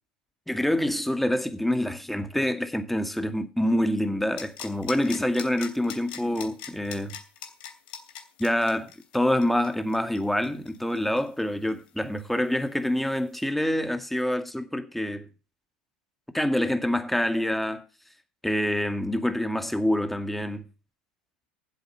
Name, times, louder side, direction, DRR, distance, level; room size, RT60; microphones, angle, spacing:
voice 1, 0.5-7.2 8.4-15.3 16.3-17.8 18.4-20.7, left 1 dB, 5° left, 2.0 m, -26 dB
sound 1, 4.4-11.9 12.2-12.3, left 9 dB, 65° left, 2.9 m, -41 dB
14.0 x 7.8 x 5.8 m
hypercardioid pair, 85°, 5 cm